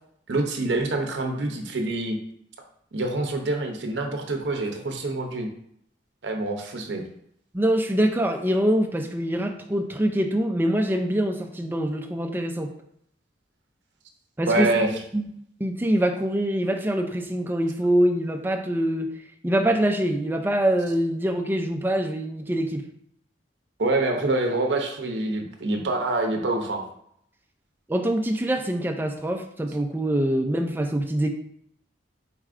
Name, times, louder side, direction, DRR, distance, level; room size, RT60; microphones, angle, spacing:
voice 1, 0.3-2.2 2.9-5.5 6.2-7.0 14.5-14.9 23.8-26.8, right 2 dB, 70° right, 3 dB, 0.6 m, -26 dB
voice 2, 7.5-12.7 14.4-15.2 15.6-19.1 19.4-22.8 27.9-31.3, right 1 dB, 10° right, 4 dB, 0.4 m, -24 dB
4.6 x 4.1 x 2.4 m, 0.71 s
head